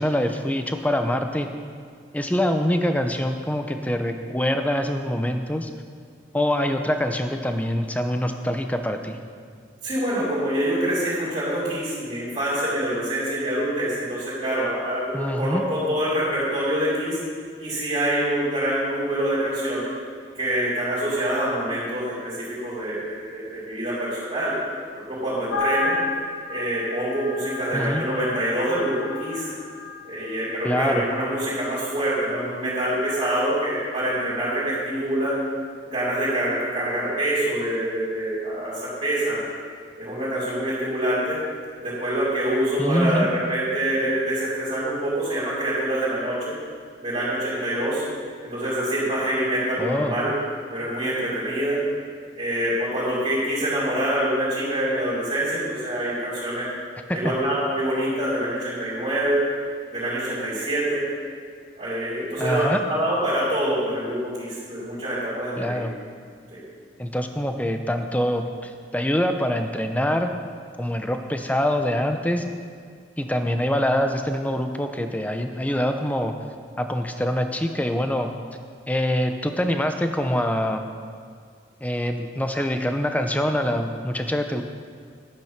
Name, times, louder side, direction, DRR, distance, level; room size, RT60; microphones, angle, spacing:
voice 1, 0.0-1.5 2.1-5.7 6.3-9.2 15.1-15.6 27.7-28.0 30.6-31.0 42.8-43.3 49.8-50.2 57.2-57.3 62.4-62.8 65.6-65.9 67.0-70.3 70.8-72.4 73.2-76.3 76.8-78.3 78.9-80.8 81.8-84.6, equal, 10° left, 6 dB, 0.7 m, -24 dB
voice 2, 9.8-17.2 17.6-19.9 20.4-24.5 25.0-25.9 26.5-29.5 30.0-35.3 35.8-39.4 40.0-41.4 41.8-46.5 47.0-48.0 48.4-50.3 50.7-51.8 52.4-56.7 57.1-59.4 59.9-61.1 61.8-65.8 66.5-66.6, right 1 dB, 35° right, -11 dB, 3.7 m, -25 dB
sound 1, 25.5-30.0, left 3 dB, 80° left, 1.1 m, -31 dB
12.0 x 9.2 x 5.9 m, 2.1 s
head